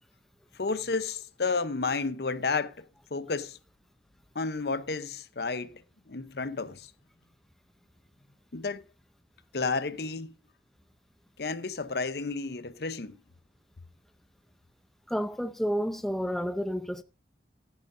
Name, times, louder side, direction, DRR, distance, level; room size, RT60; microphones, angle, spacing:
voice 1, 0.6-2.9 3.1-3.6 4.3-5.8 6.1-6.9 8.5-8.8 9.5-10.3 11.4-13.2, left 4 dB, 65° left, 0.7 m, -31 dB
voice 2, 15.1-17.0, equal, ahead, 0.5 m, -30 dB
14.0 x 10.5 x 2.6 m
head